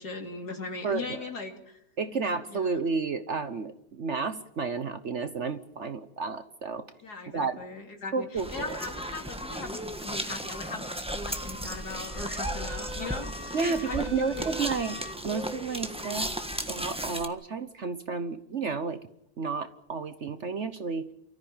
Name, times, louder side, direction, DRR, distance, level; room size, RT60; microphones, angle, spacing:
voice 1, 0.0-1.8 2.5-2.8 7.0-14.5, left 3 dB, 65° left, 3 dB, 3.4 m, -39 dB
voice 2, 0.8-1.2 2.0-6.9 7.3-7.6 8.1-8.8 13.5-16.3 16.7-19.0 19.4-21.1, right 4 dB, 50° right, 10 dB, 1.2 m, -31 dB
sound 1, 8.4-17.3, equal, 5° right, 1.2 m, -35 dB
sound 2, 11.7-15.2, right 1 dB, 25° left, 3.1 m, -42 dB
29.0 x 14.0 x 8.9 m, 0.79 s
omnidirectional pair, 1.8 m